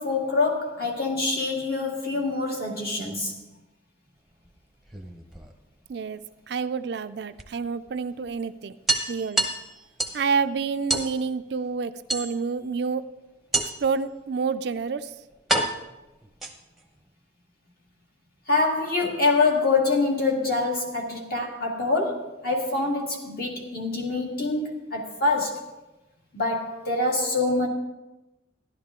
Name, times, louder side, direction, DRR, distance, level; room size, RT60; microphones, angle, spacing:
voice 1, 0.0-3.3 18.5-25.7 26.3-27.7, left 3 dB, 50° left, 1.9 m, -25 dB
sound 1, 4.8-5.9 7.4-7.5 7.9-8.0 8.3-8.4 8.9-10.3 10.9-11.1 12.1-12.7 13.5-14.0 14.8-14.9 15.5-16.9, right 2 dB, ahead, 0.8 m, -28 dB
voice 2, 5.9-6.2 6.5-8.7 9.1-9.5 10.1-13.0 13.6-15.1, right 5 dB, 60° right, 0.4 m, -28 dB
13.0 x 11.5 x 3.7 m
head